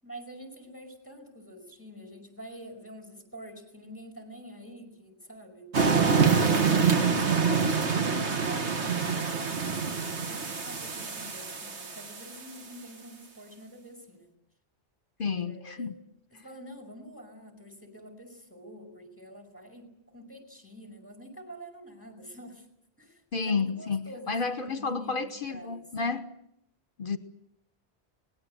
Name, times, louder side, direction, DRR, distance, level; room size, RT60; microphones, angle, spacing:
voice 1, 0.0-5.7 6.2-14.3 15.4-16.0 16.3-22.7 23.0-26.1, equal, 10° left, 5.2 m, -46 dB
sound 1, 5.7-12.4, right 5 dB, 90° right, 1.9 m, -26 dB
voice 2, 15.2-15.9 16.3-16.4 23.3-26.2 27.0-27.2, left 4 dB, 50° left, 1.3 m, -31 dB
26.0 x 20.0 x 7.9 m
omnidirectional pair, 1.1 m